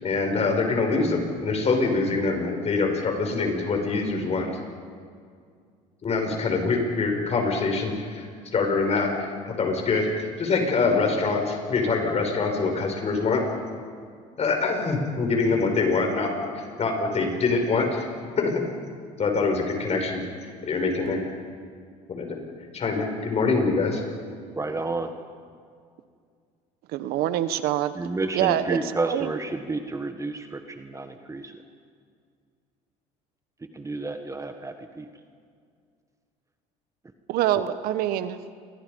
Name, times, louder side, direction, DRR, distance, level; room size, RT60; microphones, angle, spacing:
voice 1, 0.0-4.5 6.0-8.3 8.5-13.4 14.4-16.3 16.5-18.1 18.4-18.6 19.2-21.2 22.1-22.4 22.7-24.0, left 4 dB, 40° left, 3 dB, 6.4 m, -24 dB
voice 2, 24.5-25.1 27.9-31.6 33.7-35.1, right 3 dB, 20° right, 7 dB, 1.6 m, -30 dB
voice 3, 26.9-27.9 28.3-28.8 29.1-29.3 37.3-38.4, right 12 dB, 70° right, 12 dB, 1.2 m, -25 dB
28.5 x 23.5 x 5.4 m, 2.1 s
supercardioid pair, 85°, 16 cm